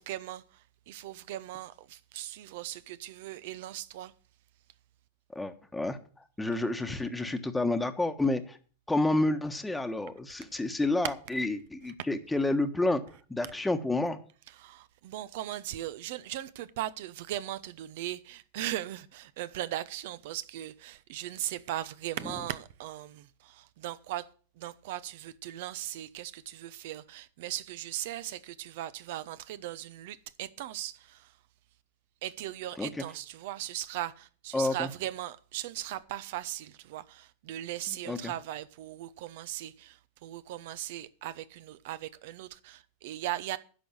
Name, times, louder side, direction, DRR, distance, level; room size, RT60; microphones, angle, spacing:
voice 1, 0.0-4.1 11.0-11.1 14.5-24.3 24.6-31.4 32.2-43.6, right 13 dB, 55° right, 0.8 m, -38 dB
voice 2, 5.3-6.0 6.4-8.6 8.9-13.0 13.3-14.2 32.8-32.9 34.5-34.9 38.0-38.2, left 2 dB, 5° left, 1.3 m, -29 dB
10.5 x 6.3 x 8.6 m
figure-of-eight pair, 90°, 0 cm